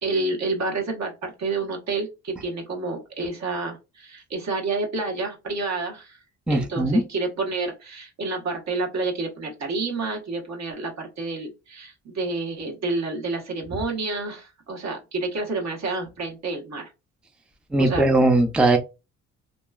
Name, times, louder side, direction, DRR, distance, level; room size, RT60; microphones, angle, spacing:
voice 1, 0.0-6.2 6.5-16.9 17.8-18.0, right 3 dB, 65° right, 1.2 m, -29 dB
voice 2, 6.5-7.0 17.7-18.8, right 2 dB, 5° right, 0.4 m, -19 dB
2.9 x 2.3 x 2.3 m
cardioid pair, 90°, 30 cm